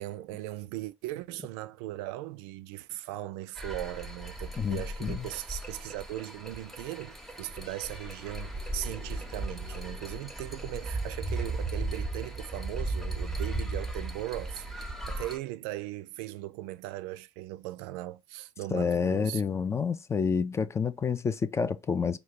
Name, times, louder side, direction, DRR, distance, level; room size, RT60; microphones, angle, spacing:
voice 1, 0.0-19.4, right 16 dB, 60° right, 0.4 m, -39 dB
sound 1, 3.5-15.4, right 2 dB, ahead, 0.8 m, -36 dB
voice 2, 4.6-5.2 18.7-22.2, left 6 dB, 20° left, 0.4 m, -29 dB
5.1 x 2.3 x 3.9 m
figure-of-eight pair, 65°, 15 cm